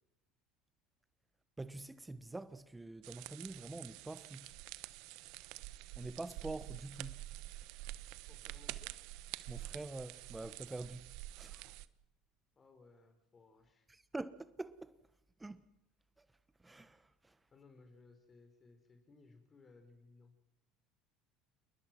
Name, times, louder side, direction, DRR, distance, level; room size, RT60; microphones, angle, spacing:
voice 1, 1.6-4.5 6.0-7.2 9.5-11.1 11.3-11.7 13.9-15.0 15.4-15.6 16.2-16.3 16.6-17.4, right 2 dB, 15° right, 1.2 m, -46 dB
sound 1, 3.0-11.9, right 17 dB, 65° right, 1.1 m, -48 dB
voice 2, 8.3-8.9 12.6-13.9 17.5-20.3, left 3 dB, 30° left, 4.5 m, -62 dB
29.0 x 21.0 x 6.1 m
hypercardioid pair, 70°, 0 cm